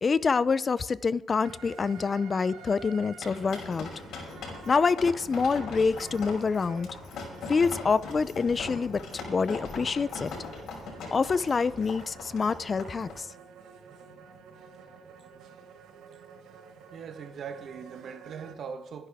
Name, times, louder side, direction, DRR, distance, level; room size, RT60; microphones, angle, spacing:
voice 1, 0.0-3.9 4.7-6.9 7.5-9.0 9.3-10.3 11.1-13.3, left 5 dB, 35° left, 0.6 m, -26 dB
sound 1, 1.4-18.5, right 5 dB, 85° right, 1.6 m, -50 dB
sound 2, 3.2-13.1, left 3 dB, 75° left, 5.5 m, -40 dB
voice 2, 16.9-19.1, right 6 dB, 60° right, 1.4 m, -40 dB
24.0 x 10.5 x 3.6 m
cardioid pair, 90°, 0 cm